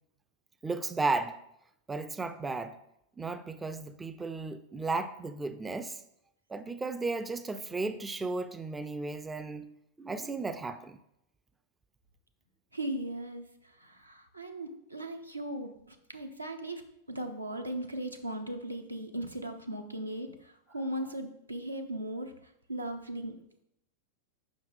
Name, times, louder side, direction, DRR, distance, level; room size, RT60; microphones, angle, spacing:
voice 1, 0.6-1.4 1.9-2.8 3.2-6.0 6.5-9.7 10.0-11.0, right 3 dB, 10° right, 0.3 m, -34 dB
voice 2, 12.7-22.3 22.7-23.4, right 1 dB, 85° right, 0.7 m, -38 dB
7.2 x 5.4 x 3.3 m
figure-of-eight pair, 90°, 0 cm